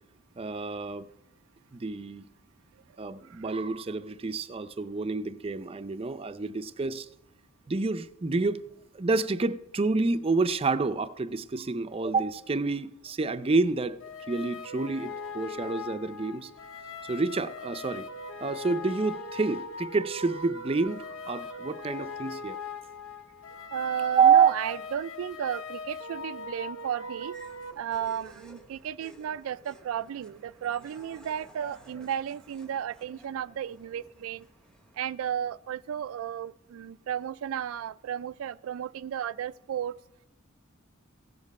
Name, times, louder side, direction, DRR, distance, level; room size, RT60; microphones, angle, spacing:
voice 1, 0.4-1.1 1.7-2.2 3.0-7.1 7.7-8.6 8.9-14.0 14.3-16.5 17.0-18.1 18.4-22.6 24.2-24.5, right 4 dB, 30° right, 0.5 m, -28 dB
sound 1, 14.0-27.7, left 3 dB, 75° left, 0.8 m, -40 dB
voice 2, 23.6-27.3 27.8-34.5 35.0-39.9, right 9 dB, 85° right, 0.3 m, -34 dB
sound 2, 27.3-35.2, equal, 5° left, 0.9 m, -55 dB
16.0 x 7.4 x 5.3 m
head